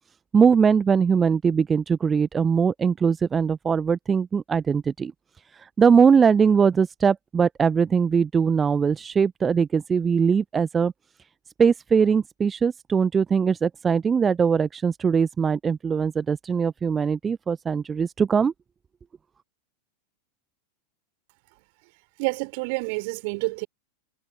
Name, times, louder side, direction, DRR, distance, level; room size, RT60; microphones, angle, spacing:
voice 1, 0.3-5.1 5.5-10.9 11.6-18.5, right 6 dB, 20° right, 0.8 m, -21 dB
voice 2, 22.2-23.7, right 30 dB, 45° right, 5.0 m, -28 dB
figure-of-eight pair, 90°, 0 cm